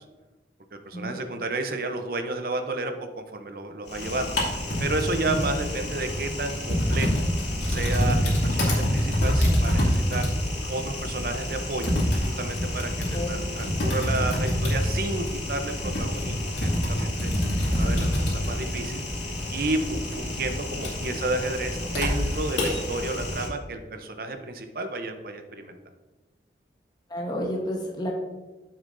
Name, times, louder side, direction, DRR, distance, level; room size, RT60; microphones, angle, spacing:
voice 1, 0.7-4.3 4.8-7.2 7.6-10.3 10.7-11.9 12.4-17.3 17.7-19.0 19.5-25.7, right 2 dB, 55° right, 6 dB, 0.8 m, -31 dB
Typing, 3.9-23.5, left 1 dB, 85° left, 2.5 m, -27 dB
voice 2, 27.1-28.1, equal, 25° left, -1 dB, 1.1 m, -31 dB
9.4 x 7.1 x 2.7 m, 1.1 s
head